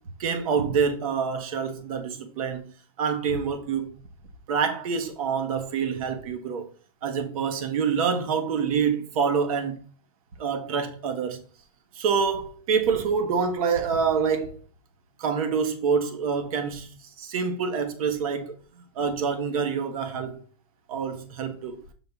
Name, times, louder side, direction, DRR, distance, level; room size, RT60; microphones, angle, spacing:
voice 1, 0.2-2.6 3.0-3.9 4.5-6.7 7.0-9.8 10.4-11.4 11.9-14.6 15.2-16.9 17.2-18.5 18.9-20.4 20.9-21.8, right 6 dB, 65° right, 1.2 m, -26 dB
7.0 x 3.7 x 3.5 m
supercardioid pair, 165°, 19 cm